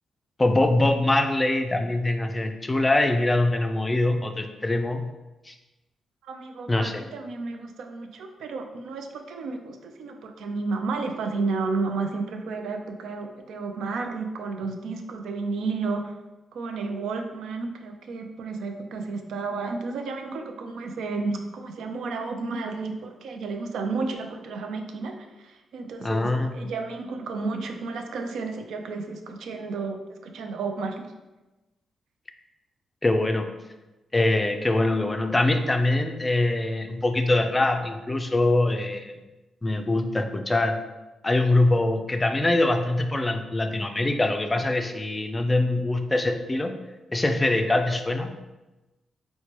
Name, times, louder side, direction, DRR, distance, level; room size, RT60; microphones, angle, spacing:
voice 1, 0.4-5.1 5.5-5.6 6.7-7.0 26.0-26.7 33.0-33.5 34.1-39.2 39.6-40.7 41.2-46.7 47.1-48.3, left 2 dB, 20° left, 6 dB, 0.3 m, -23 dB
voice 2, 6.2-16.1 16.5-31.1, right 4 dB, 85° right, 4 dB, 0.4 m, -32 dB
4.3 x 2.2 x 2.9 m, 1.1 s
cardioid pair, 80°, 0 cm